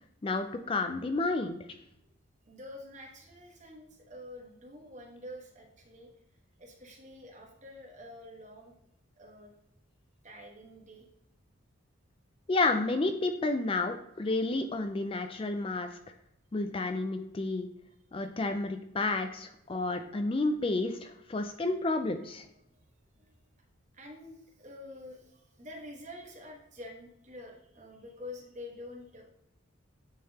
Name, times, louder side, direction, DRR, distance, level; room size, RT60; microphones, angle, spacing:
voice 1, 0.2-1.6 12.5-16.0 16.5-17.7 18.1-22.5, left 2 dB, 25° left, 7 dB, 0.3 m, -31 dB
voice 2, 2.4-6.1 6.6-8.7 9.2-9.5 10.2-11.0 21.2-21.5 22.6-22.7 23.1-23.3 23.9-29.2, left 1 dB, 35° right, 0 dB, 1.2 m, -48 dB
9.2 x 3.8 x 2.8 m, 0.80 s
head